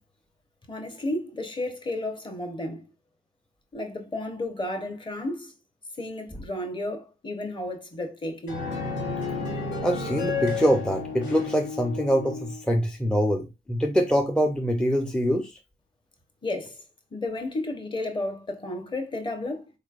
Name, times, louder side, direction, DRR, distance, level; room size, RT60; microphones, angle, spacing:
voice 1, 0.7-2.8 3.7-5.5 6.0-8.6 16.4-16.7 17.1-19.7, left 1 dB, 25° left, 0.9 m, -32 dB
sound 1, 8.5-12.6, left 4 dB, 75° left, 1.7 m, -31 dB
voice 2, 9.8-15.6, equal, 5° left, 0.5 m, -24 dB
4.0 x 3.1 x 2.4 m
cardioid pair, 90°, 20 cm